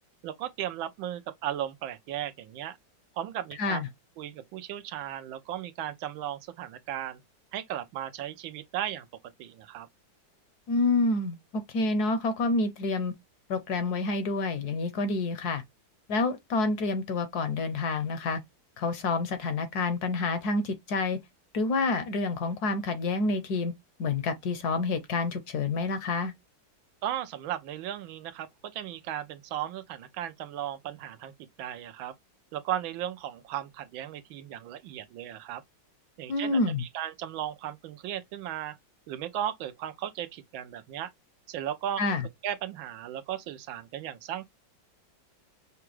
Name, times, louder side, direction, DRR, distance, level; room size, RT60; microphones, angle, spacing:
voice 1, 0.2-2.8 3.1-3.8 4.2-7.2 7.5-9.1 9.4-9.9 27.0-31.3 31.6-32.1 32.5-35.6 36.2-38.8 39.1-41.1 41.5-42.0 42.4-44.4, right 11 dB, 90° right, 1.4 m, -36 dB
voice 2, 10.7-13.1 13.5-15.6 16.1-18.4 18.8-21.2 21.5-23.7 24.0-26.3 36.3-36.8 42.0-42.2, left 3 dB, 65° left, 1.1 m, -28 dB
5.8 x 2.3 x 3.0 m
omnidirectional pair, 2.1 m